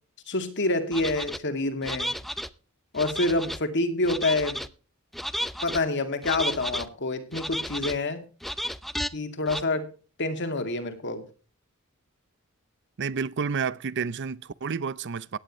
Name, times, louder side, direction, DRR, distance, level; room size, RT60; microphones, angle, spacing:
voice 1, 0.3-2.2 2.9-4.7 5.6-8.3 9.1-9.9 10.2-11.3, left 2 dB, 55° left, 2.4 m, -27 dB
sound 1, 0.9-1.4 1.8-2.5 3.0-3.6 4.0-4.7 5.1-5.8 6.2-6.9 7.3-8.0 8.4-9.1 9.5-9.6, equal, ahead, 0.6 m, -32 dB
voice 2, 13.0-15.4, right 5 dB, 55° right, 0.6 m, -30 dB
17.0 x 10.5 x 3.1 m
head